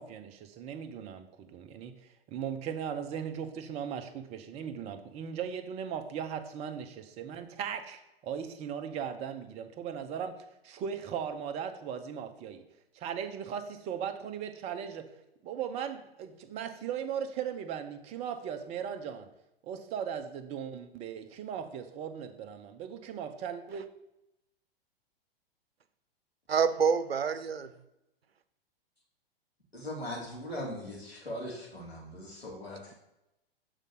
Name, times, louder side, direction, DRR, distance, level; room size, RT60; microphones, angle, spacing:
voice 1, 0.0-10.4 10.6-12.6 12.9-15.1 15.4-19.3 19.6-23.9, right 8 dB, 20° right, 8 dB, 0.6 m, -38 dB
voice 2, 26.5-27.7, right 6 dB, 75° right, 12 dB, 0.6 m, -27 dB
voice 3, 29.7-32.9, left 1 dB, 85° left, -4 dB, 2.6 m, -40 dB
6.5 x 4.0 x 6.2 m, 0.88 s
figure-of-eight pair, 100°, 30 cm